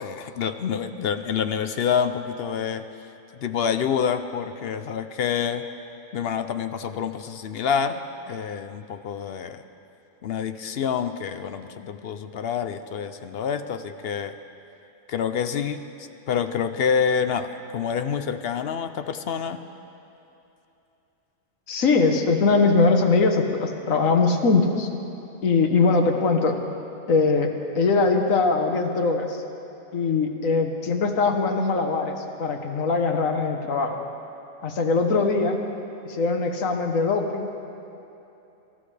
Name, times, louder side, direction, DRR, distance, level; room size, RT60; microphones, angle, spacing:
voice 1, 0.0-2.9 3.4-5.7 6.1-8.0 8.3-9.6 10.2-14.3 15.1-19.6, left 7 dB, 60° left, 10 dB, 0.7 m, -27 dB
voice 2, 21.7-24.9 25.4-26.6 27.1-29.4 29.9-34.0 34.6-35.6 36.0-37.5, left 4 dB, 85° left, 4 dB, 1.6 m, -21 dB
24.5 x 14.5 x 3.3 m, 2.8 s
omnidirectional pair, 1.4 m